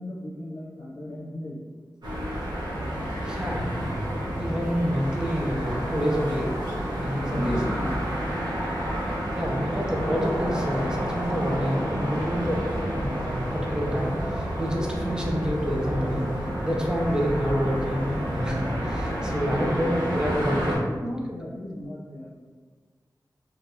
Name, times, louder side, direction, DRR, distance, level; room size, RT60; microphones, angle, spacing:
voice 1, 0.0-1.6 7.3-8.0 19.3-19.9 20.4-22.3, left 1 dB, 65° left, -7 dB, 0.7 m, -35 dB
sound 1, 2.0-20.8, equal, 75° right, 0.8 m, -29 dB
voice 2, 3.2-3.7 4.4-6.6 7.0-7.6 9.3-20.9, equal, 10° right, -2 dB, 0.6 m, -28 dB
2.8 x 2.4 x 3.4 m, 1.5 s
wide cardioid pair, 100°, 7 cm